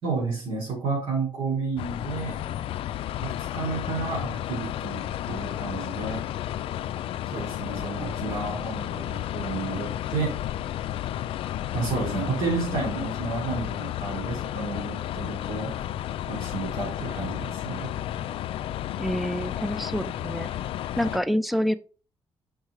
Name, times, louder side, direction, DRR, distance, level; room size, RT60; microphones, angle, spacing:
voice 1, 0.0-2.4 3.2-6.2 7.3-10.4 11.7-15.7 16.3-17.9, right 4 dB, 65° right, -5 dB, 3.8 m, -31 dB
sound 1, 1.8-21.2, left 12 dB, 80° left, 0.4 m, -32 dB
voice 2, 19.0-20.5 21.0-21.7, equal, ahead, 13 dB, 0.4 m, -27 dB
6.5 x 4.6 x 4.8 m, 0.37 s
wide cardioid pair, 165°, 9 cm